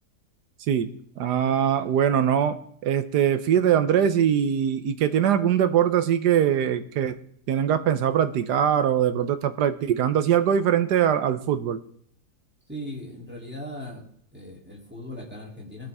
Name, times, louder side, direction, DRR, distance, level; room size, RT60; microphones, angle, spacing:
voice 1, 1.2-7.2 7.5-11.8, right 9 dB, 80° right, 11 dB, 1.5 m, -22 dB
voice 2, 12.7-14.1 14.3-15.9, left 1 dB, 5° right, -3 dB, 3.0 m, -38 dB
22.0 x 7.4 x 3.6 m, 0.65 s
omnidirectional pair, 1.8 m